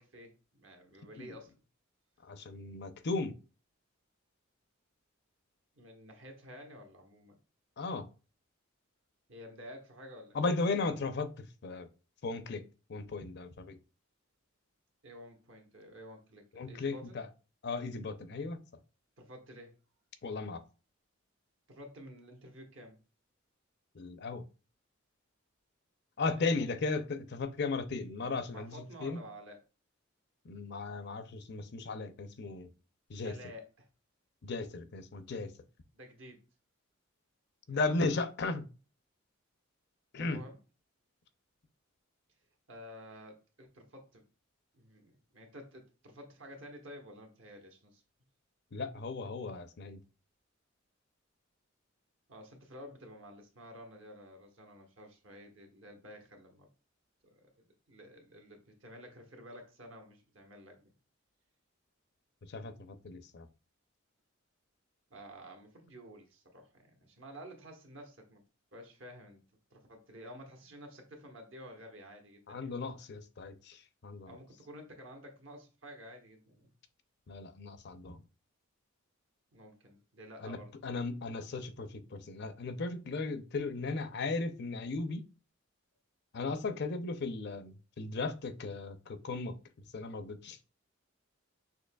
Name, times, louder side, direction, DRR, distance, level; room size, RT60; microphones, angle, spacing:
voice 1, 0.0-1.5 5.7-7.4 9.3-10.4 15.0-17.2 19.2-19.8 21.7-23.0 26.4-26.8 28.5-29.6 33.2-33.9 35.9-36.4 37.7-37.8 40.2-40.6 42.7-44.2 44.7-48.0 52.3-56.7 57.3-60.9 65.1-68.4 68.7-69.4 69.7-72.8 74.2-76.7 79.5-81.0, equal, 65° right, 1.2 m, -51 dB
voice 2, 2.3-3.4 7.8-8.1 10.3-11.3 11.6-11.9 12.2-12.6 12.9-13.7 16.6-17.3 17.6-18.6 20.2-20.6 24.0-24.4 26.2-28.7 29.0-29.2 30.5-32.7 33.1-33.4 34.4-35.5 37.7-38.6 40.1-40.4 48.7-50.0 62.5-63.4 72.5-73.8 74.0-74.3 77.3-78.2 80.4-80.6 80.8-85.2 86.3-89.6 89.9-90.6, left 3 dB, 55° left, 0.5 m, -36 dB
6.4 x 2.9 x 2.2 m
head